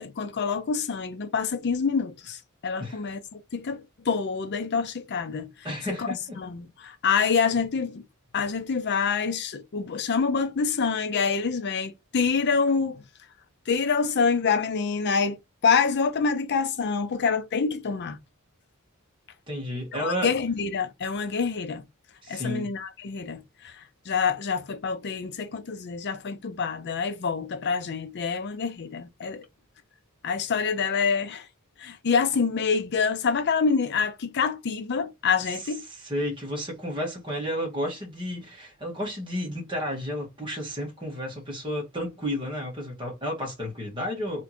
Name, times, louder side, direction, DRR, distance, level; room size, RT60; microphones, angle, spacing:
voice 1, 0.0-5.5 6.0-6.1 6.4-8.0 8.3-13.0 13.7-15.4 15.6-18.2 19.9-21.8 22.3-29.4 30.2-31.5 31.8-35.8, left 5 dB, 50° left, 0.5 m, -26 dB
voice 2, 5.6-6.4 19.5-20.3 22.2-22.7 35.9-44.4, equal, 25° right, 1.7 m, -32 dB
3.4 x 3.0 x 4.2 m
head